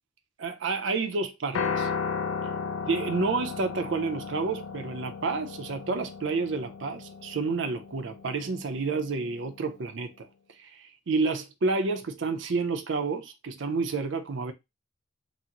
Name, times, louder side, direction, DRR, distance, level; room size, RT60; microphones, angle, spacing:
voice 1, 0.4-1.9 2.9-10.3 10.6-14.5, right 4 dB, 65° right, 0.5 m, -30 dB
Piano, 1.5-9.8, left 5 dB, 90° left, 0.5 m, -35 dB
3.7 x 2.0 x 2.8 m
head